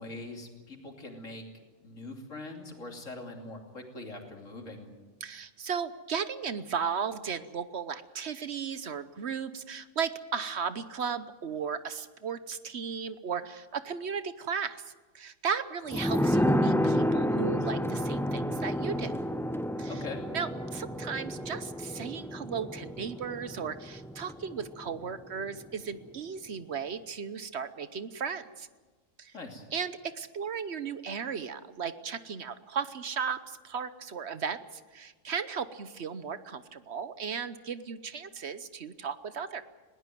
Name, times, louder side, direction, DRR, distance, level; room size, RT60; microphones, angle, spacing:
voice 1, 0.0-1.4 1.8-4.9 19.9-20.2 29.3-29.7, left 2 dB, 75° left, 3 dB, 3.3 m, -42 dB
voice 2, 5.2-19.1 19.8-19.9 20.3-28.7 29.2-29.3 29.7-39.6, right 6 dB, 60° right, 13 dB, 1.1 m, -35 dB
sound 1, 15.9-25.2 25.5-25.6, equal, 5° left, 0.4 m, -30 dB
20.5 x 18.0 x 9.2 m, 1.3 s
omnidirectional pair, 1.4 m